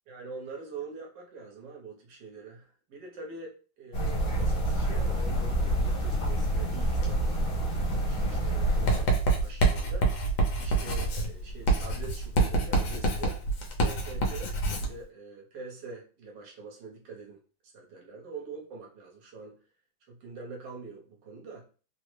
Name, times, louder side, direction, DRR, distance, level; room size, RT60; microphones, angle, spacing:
voice 1, 0.1-9.1 9.4-10.1 10.6-13.4 13.8-19.6 20.1-21.7, right 4 dB, 70° right, 0 dB, 1.5 m, -44 dB
sound 1, 3.9-9.0, right 1 dB, 70° left, 1.8 m, -27 dB
Writing, 8.9-14.9, right 2 dB, 90° left, 1.5 m, -26 dB
3.7 x 2.0 x 3.1 m, 0.37 s
omnidirectional pair, 2.0 m